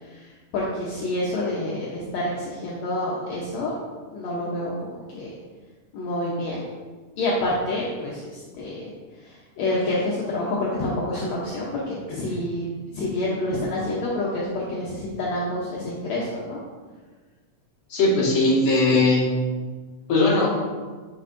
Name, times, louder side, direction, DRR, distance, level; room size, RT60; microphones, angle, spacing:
voice 1, 0.1-3.7 4.1-5.3 5.9-6.6 7.2-8.9 9.2-16.6, left 1 dB, 70° left, -5 dB, 2.0 m, -28 dB
voice 2, 17.9-19.3 20.1-20.5, left 2 dB, 45° left, -6 dB, 2.3 m, -19 dB
11.0 x 4.4 x 2.6 m, 1.4 s
omnidirectional pair, 3.5 m